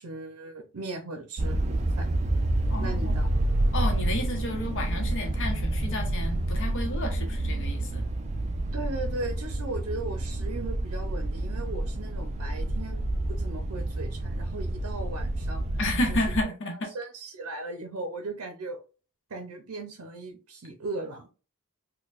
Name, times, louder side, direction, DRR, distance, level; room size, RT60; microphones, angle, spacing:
voice 1, 0.0-2.1 2.8-3.3 8.7-13.0 13.3-15.7 16.1-16.2 16.7-18.8 19.3-21.3, right 2 dB, 75° right, 0.6 m, -37 dB
sound 1, 1.4-16.4, right 1 dB, 30° right, 0.4 m, -29 dB
voice 2, 2.7-3.2 3.7-8.1 15.8-16.9, left 1 dB, 60° left, 0.8 m, -31 dB
4.4 x 2.2 x 2.4 m
head